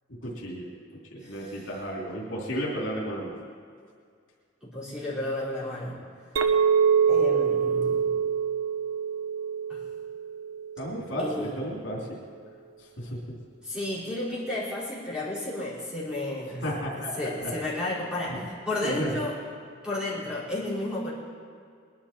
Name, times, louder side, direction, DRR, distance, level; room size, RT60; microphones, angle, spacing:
voice 1, 0.2-0.7 1.1-3.4 10.8-12.2 13.0-13.2 16.6-17.1 17.4-17.5 18.3-18.4 18.8-19.1, equal, 75° left, -4 dB, 3.0 m, -33 dB
voice 2, 1.2-1.7 4.6-6.0 7.1-8.1 9.7-9.8 11.2-11.6 13.6-16.8 17.2-19.4 19.8-21.1, left 1 dB, 5° right, -9 dB, 4.9 m, -32 dB
Chink clink, 6.4-10.8, right 7 dB, 90° right, 0.9 m, -25 dB
21.0 x 11.5 x 4.4 m, 2.2 s
head